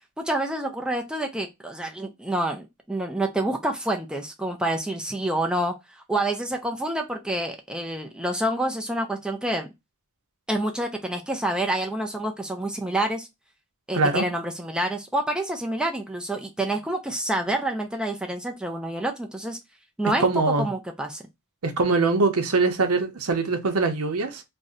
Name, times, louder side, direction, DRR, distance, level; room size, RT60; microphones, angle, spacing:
voice 1, 0.2-9.7 10.5-13.3 13.9-19.6 20.0-21.2, right 1 dB, 5° right, 0.3 m, -28 dB
voice 2, 13.9-14.3 20.2-20.7 21.6-24.4, right 3 dB, 80° right, 0.7 m, -22 dB
2.6 x 2.1 x 3.6 m
head